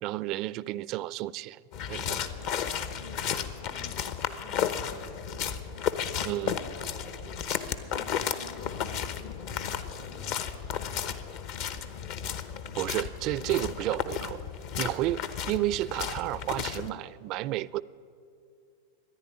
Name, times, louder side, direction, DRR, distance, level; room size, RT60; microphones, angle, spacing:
voice 1, 0.0-1.6 1.9-2.2 6.2-6.6 12.7-14.4 14.8-17.8, right 16 dB, 45° right, 0.4 m, -31 dB
sound 1, 1.7-16.9, left 8 dB, 55° left, 0.9 m, -33 dB
voice 2, 2.0-5.9 6.4-11.2, left 3 dB, 85° left, 3.5 m, -50 dB
14.0 x 10.5 x 9.8 m
hypercardioid pair, 105°, 0 cm